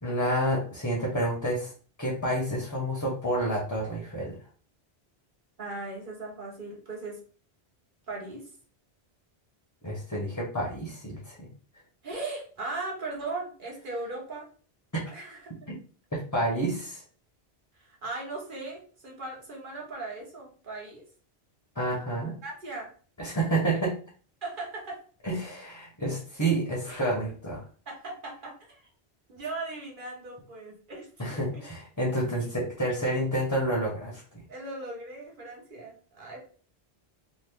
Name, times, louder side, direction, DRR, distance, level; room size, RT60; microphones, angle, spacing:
voice 1, 0.0-1.7 2.0-4.4 9.8-11.5 15.7-15.8 16.1-17.0 21.7-22.3 23.2-24.0 25.2-27.6 31.2-34.2, right 1 dB, 20° left, -3 dB, 0.7 m, -29 dB
voice 2, 5.6-7.2 8.1-8.4 12.0-14.5 15.1-15.4 17.8-21.0 22.4-22.9 24.4-25.0 27.9-28.9 29.3-31.6 34.5-36.4, right 2 dB, 55° right, -1 dB, 1.2 m, -38 dB
2.9 x 2.3 x 3.5 m, 0.41 s
omnidirectional pair, 1.1 m